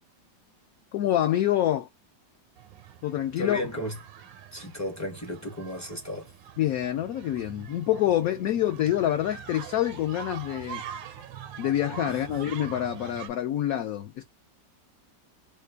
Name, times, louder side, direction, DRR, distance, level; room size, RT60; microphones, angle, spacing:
voice 1, 0.9-1.9 3.0-3.6 6.6-10.8 11.6-14.2, left 12 dB, 70° left, 0.8 m, -26 dB
sound 1, 2.6-13.3, right 9 dB, 90° right, 1.3 m, -44 dB
voice 2, 3.4-3.9 4.5-6.3 12.1-12.4, left 1 dB, 25° left, 0.4 m, -34 dB
3.2 x 2.2 x 3.2 m
omnidirectional pair, 1.9 m